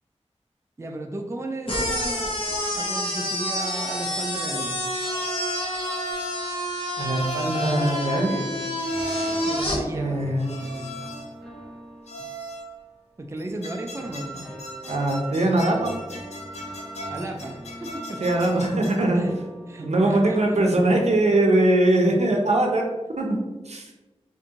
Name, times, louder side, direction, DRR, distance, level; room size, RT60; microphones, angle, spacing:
voice 1, 0.8-2.3 2.7-4.8 9.4-11.0 13.2-14.4 17.1-18.2 19.1-19.4 19.7-21.1, right 1 dB, 25° right, 3 dB, 0.4 m, -35 dB
sound 1, 1.7-9.8, equal, 50° left, 1.0 m, -28 dB
sound 2, 3.6-4.1 4.9-6.6 7.1-8.1 8.8-9.7 10.4-11.4 12.1-12.8 13.4-19.1, equal, 75° left, 0.6 m, -39 dB
voice 2, 7.0-8.4 9.9-10.5 14.9-15.9 18.2-19.2 19.8-22.8 23.2-23.4 23.7-23.8, right 1 dB, 80° right, 1 dB, 0.6 m, -21 dB
sound 3, 7.2-13.0 14.0-21.4, right 1 dB, ahead, 0.7 m, -43 dB
3.5 x 2.6 x 2.8 m, 1.2 s
wide cardioid pair, 70°, 11 cm